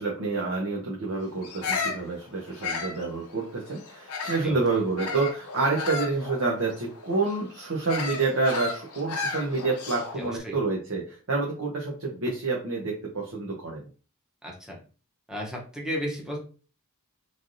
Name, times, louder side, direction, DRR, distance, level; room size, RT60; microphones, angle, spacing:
voice 1, 0.0-13.8, right 3 dB, 65° right, -2 dB, 0.7 m, -28 dB
Bird vocalization bird call bird song, 1.4-4.5 5.0-10.3, left 4 dB, 80° left, 0.7 m, -34 dB
voice 2, 10.2-10.5 14.4-14.8 15.3-16.4, equal, 5° right, -2 dB, 0.8 m, -33 dB
3.2 x 2.6 x 2.6 m, 0.37 s
head